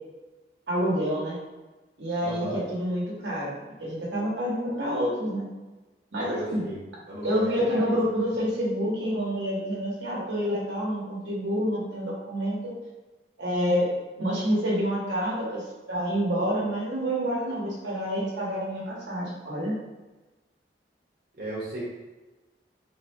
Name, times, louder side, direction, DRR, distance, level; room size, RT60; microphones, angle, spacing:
voice 1, 0.7-1.4 2.0-5.5 6.1-6.7 7.2-12.7 13.4-13.9 14.2-19.7, equal, 80° right, -5 dB, 1.2 m, -28 dB
voice 2, 2.2-2.6 6.2-6.8 7.1-8.0 21.4-21.8, right 1 dB, 55° right, -7 dB, 1.0 m, -35 dB
3.8 x 2.2 x 4.3 m, 1.1 s
head